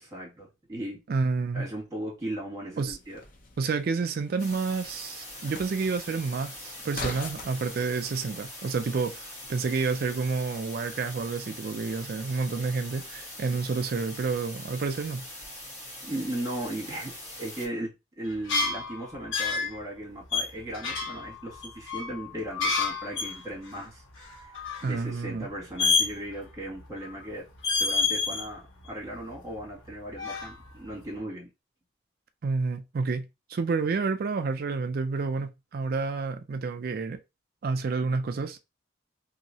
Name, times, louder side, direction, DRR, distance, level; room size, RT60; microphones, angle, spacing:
voice 1, 0.0-1.0 1.5-3.2 16.0-27.5 27.8-31.5, right 1 dB, 15° right, 1.8 m, -37 dB
voice 2, 1.1-1.7 2.8-3.0 3.6-15.2 24.8-25.5 32.4-37.2 37.6-38.6, right 4 dB, 50° right, 0.4 m, -29 dB
sound 1, 2.8-7.8, left 2 dB, 45° left, 0.6 m, -43 dB
sound 2, 4.4-17.7, left 1 dB, 20° left, 1.8 m, -43 dB
sound 3, 18.3-19.8 20.3-23.4 23.7-23.8 24.1-24.9 25.8-26.5 26.8-27.3 27.6-28.5 28.8-29.9 30.1-30.9, left 4 dB, 90° left, 1.2 m, -29 dB
3.1 x 2.8 x 2.7 m
head